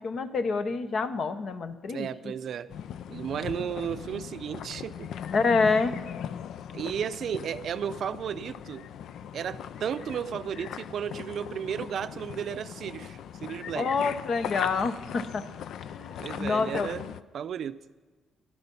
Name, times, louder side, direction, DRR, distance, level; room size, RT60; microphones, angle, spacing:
voice 1, 0.0-2.3 5.3-5.9 13.7-15.4 15.8-16.9, left 4 dB, 55° left, 10 dB, 1.0 m, -27 dB
voice 2, 1.9-2.7 3.1-5.1 6.7-8.9 9.3-13.9 16.2-17.1 17.3-17.8, right 8 dB, 65° right, 13 dB, 0.5 m, -34 dB
sound 1, 2.7-17.2, left 9 dB, 75° left, 0.4 m, -39 dB
12.0 x 12.0 x 5.5 m, 1.4 s
cardioid pair, 90°, 0 cm